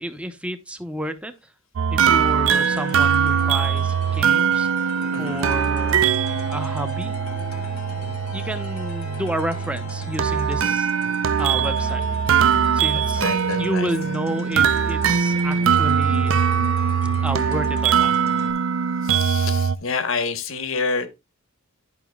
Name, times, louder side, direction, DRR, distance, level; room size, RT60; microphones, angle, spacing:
voice 1, 0.0-1.3 1.9-6.0 6.5-7.2 8.3-12.0 12.7-13.2 13.6-16.3 17.2-18.1, equal, 5° right, 0.7 m, -30 dB
sound 1, 1.8-19.8, right 7 dB, 60° right, 0.4 m, -21 dB
sound 2, 2.5-18.5, left 3 dB, 85° left, 1.7 m, -38 dB
voice 2, 5.1-5.4 12.9-13.9 16.8-16.9 19.0-21.1, left 4 dB, 65° left, 1.1 m, -28 dB
11.0 x 5.9 x 2.3 m
head